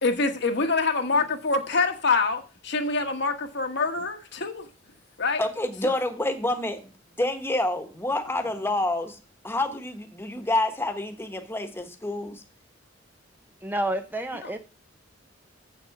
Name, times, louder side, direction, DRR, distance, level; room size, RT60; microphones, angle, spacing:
voice 1, 0.0-4.7 5.2-5.4 5.8-5.9, left 4 dB, 60° left, 1.3 m, -25 dB
voice 2, 5.4-6.9 7.2-9.2 9.4-12.4, left 2 dB, 10° left, 1.1 m, -28 dB
voice 3, 13.6-14.6, right 1 dB, 10° right, 0.5 m, -29 dB
7.7 x 6.5 x 5.9 m
head